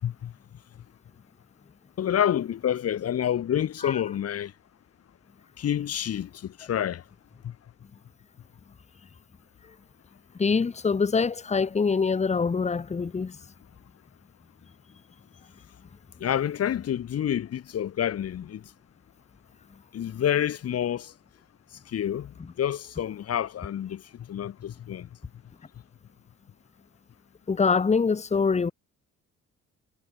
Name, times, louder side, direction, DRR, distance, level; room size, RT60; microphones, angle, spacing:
voice 1, 2.0-4.5 5.6-7.0 7.4-7.5 16.2-18.6 19.9-21.1 21.9-25.1, left 10 dB, 55° left, 7.7 m, -28 dB
voice 2, 10.4-13.4 27.5-28.7, left 5 dB, 20° left, 2.3 m, -24 dB
cardioid pair, 150°, 29 cm